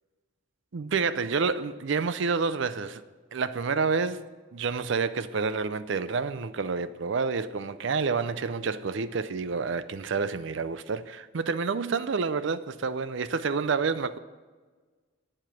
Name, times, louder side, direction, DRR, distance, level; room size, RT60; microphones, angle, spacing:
voice 1, 0.7-3.0 3.3-4.2 4.5-14.2, right 5 dB, 60° right, 0.5 m, -28 dB
8.8 x 7.5 x 7.8 m
head